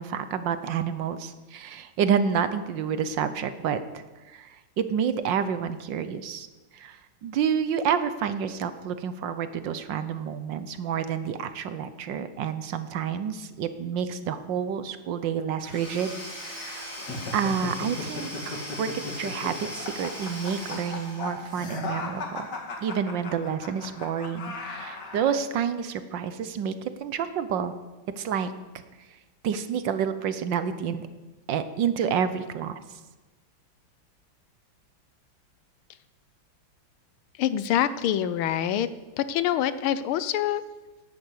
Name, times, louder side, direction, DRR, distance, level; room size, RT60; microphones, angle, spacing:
voice 1, 0.0-4.0 4.3-6.5 6.7-16.1 16.4-17.0 17.3-22.5 22.8-27.7 28.2-28.5 29.4-31.1 31.5-32.8, right 7 dB, 65° right, 11 dB, 1.4 m, -29 dB
Domestic sounds home sounds / Tools, 15.6-21.7, left 1 dB, 40° left, 4.6 m, -39 dB
sound 1, 16.9-25.4, left 3 dB, 55° left, 2.4 m, -37 dB
voice 2, 37.4-38.9 39.2-40.6, left 10 dB, 85° left, 14 dB, 1.6 m, -25 dB
11.5 x 10.5 x 8.1 m, 1.2 s
omnidirectional pair, 2.3 m